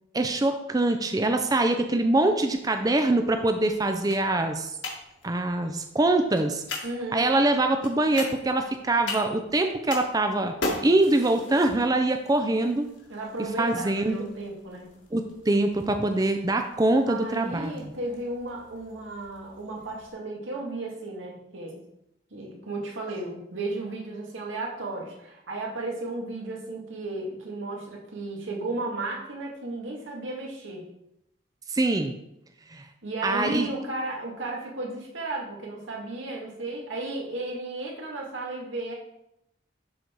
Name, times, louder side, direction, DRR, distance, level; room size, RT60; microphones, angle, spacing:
voice 1, 0.1-4.7 5.2-6.6 7.1-10.5 10.8-12.8 13.6-14.2 15.1-17.7 31.7-32.2 32.7-32.8 33.2-33.7, right 2 dB, 20° right, 6 dB, 0.5 m, -24 dB
sound 1, 2.2-20.1, left 2 dB, 70° left, 1.8 m, -41 dB
voice 2, 6.8-7.3 13.1-15.0 17.1-21.8 22.3-30.8 33.0-38.9, right 2 dB, 90° right, -1 dB, 2.1 m, -34 dB
11.0 x 4.0 x 4.6 m, 0.82 s
head